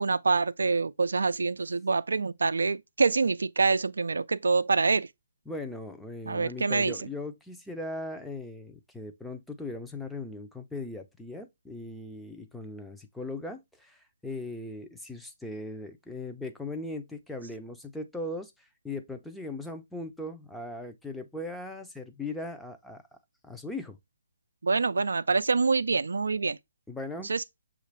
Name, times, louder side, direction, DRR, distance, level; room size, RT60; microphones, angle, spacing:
voice 1, 0.0-5.1 6.3-6.9 24.6-26.6 27.3-27.4, right 4 dB, 85° right, 0.3 m, -26 dB
voice 2, 5.5-23.0 23.4-24.0 26.9-27.3, left 2 dB, 5° left, 0.5 m, -39 dB
6.4 x 2.5 x 3.1 m
hypercardioid pair, 150°, 0 cm